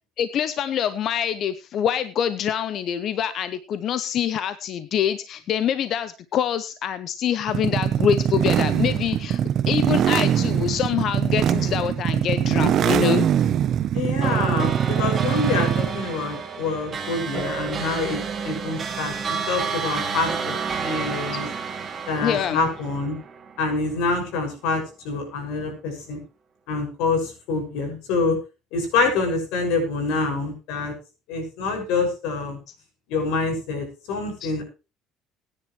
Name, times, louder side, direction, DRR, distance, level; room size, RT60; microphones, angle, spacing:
voice 1, 0.2-9.4 9.7-13.3 22.2-22.7 34.4-34.5, left 9 dB, 50° left, 13 dB, 0.7 m, -25 dB
sound 1, 7.5-16.0, right 9 dB, 45° right, 0.8 m, -22 dB
voice 2, 13.9-18.2 18.4-20.5 20.8-21.5 22.1-23.2 23.6-26.2 26.7-28.4 28.7-30.9 31.3-32.6 33.1-34.6, left 3 dB, 90° left, 4 dB, 6.4 m, -26 dB
sound 2, 14.2-23.8, right 5 dB, 25° right, 2.5 m, -30 dB
21.0 x 9.9 x 3.2 m, 0.30 s
cardioid pair, 145°, 0 cm